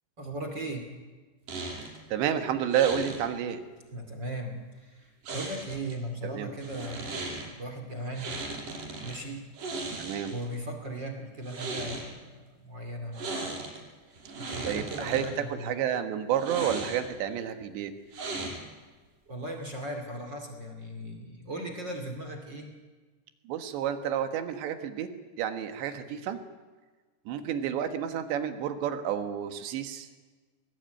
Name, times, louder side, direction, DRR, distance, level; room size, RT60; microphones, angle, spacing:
voice 1, 0.2-0.9 3.9-8.3 9.0-9.5 10.2-13.4 14.4-15.8 19.3-22.7, right 1 dB, 30° right, 4 dB, 2.5 m, -38 dB
sound 1, 1.5-2.0 2.7-3.2 5.2-5.9 6.6-7.5 8.1-9.2 9.5-10.5 11.4-12.1 13.1-13.8 14.1-15.3 16.4-17.2 18.1-18.8, right 3 dB, 50° right, 7.1 m, -37 dB
voice 2, 2.1-3.6 6.2-6.5 10.0-10.3 14.7-15.3 15.5-17.9 23.5-25.1 25.4-26.4 27.3-30.1, right 9 dB, 90° right, 8 dB, 3.8 m, -30 dB
21.0 x 20.5 x 9.2 m, 1.3 s
omnidirectional pair, 4.9 m